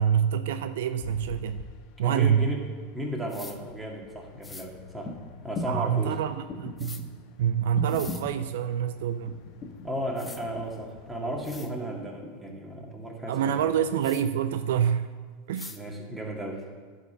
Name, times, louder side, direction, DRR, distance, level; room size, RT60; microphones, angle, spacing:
voice 1, 0.0-1.6 2.0-2.5 5.7-7.1 7.4-9.4 13.3-15.1 15.5-15.7, right 9 dB, 75° right, 11 dB, 0.4 m, -26 dB
sound 1, 1.0-11.6, left 7 dB, 55° left, 0.6 m, -50 dB
voice 2, 2.0-2.6 2.9-5.1 5.4-6.1 9.8-13.7 15.7-16.6, right 1 dB, 10° right, -1 dB, 1.9 m, -34 dB
sound 2, 3.3-3.6 4.4-4.7 6.8-7.0 7.8-8.2 9.7-9.8 10.2-10.4 11.1-11.2 11.4-11.7 14.0-14.2 15.5-15.8, left 3 dB, 15° left, 0.7 m, -43 dB
sound 3, 5.0-5.2 5.5-5.9 6.5-7.1 7.7-8.4 9.3-9.9 10.2-10.9 11.9-12.5 13.5-13.6, left 3 dB, 30° left, 1.5 m, -37 dB
10.5 x 4.3 x 7.0 m, 1.5 s
hypercardioid pair, 105°, 0 cm